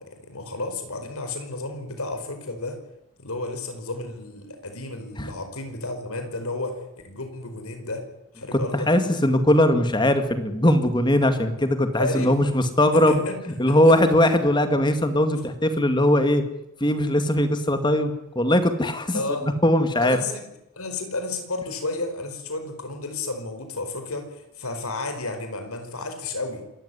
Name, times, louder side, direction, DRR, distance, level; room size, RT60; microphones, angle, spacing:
voice 1, 0.0-2.8 3.2-8.1 8.3-8.9 12.0-12.4 12.9-14.0 19.1-19.5 20.0-20.5 20.7-26.6, left 2 dB, 85° left, 7 dB, 4.9 m, -32 dB
voice 2, 8.9-13.2 13.6-16.4 16.8-19.2 19.6-20.2, left 1 dB, 20° left, 9 dB, 2.1 m, -20 dB
27.0 x 14.0 x 9.8 m, 0.88 s
head